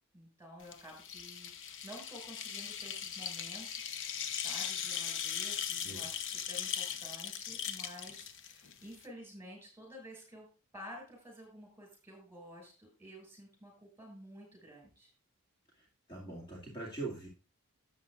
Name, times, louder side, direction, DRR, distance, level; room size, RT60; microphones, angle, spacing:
voice 1, 0.1-10.5 10.7-15.1, equal, 10° right, 2 dB, 5.9 m, -51 dB
sound 1, 0.6-9.1, left 8 dB, 60° left, 0.9 m, -39 dB
voice 2, 15.7-17.3, right 3 dB, 25° left, -4 dB, 2.3 m, -43 dB
13.0 x 8.5 x 2.5 m, 0.33 s
head